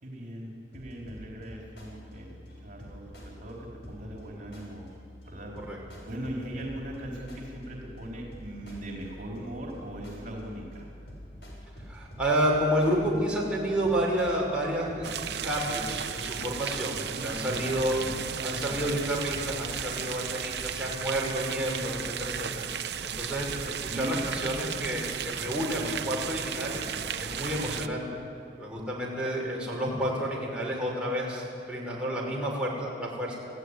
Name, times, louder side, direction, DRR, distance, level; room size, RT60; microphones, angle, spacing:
voice 1, 0.0-2.3 2.6-4.9 5.2-5.5 6.1-10.9 17.1-18.2 18.6-18.9 23.9-24.3, right 1 dB, 50° right, -1 dB, 4.2 m, -39 dB
sound 1, 0.7-16.4 17.3-19.8, equal, 70° left, 7.2 m, -47 dB
voice 2, 11.9-18.0 18.4-22.7 23.0-26.8 27.2-28.2 28.6-33.4, equal, 5° right, -4 dB, 6.0 m, -30 dB
sound 2, 15.0-27.9, right 8 dB, 70° right, 0.9 m, -35 dB
28.0 x 16.0 x 10.0 m, 2.4 s
head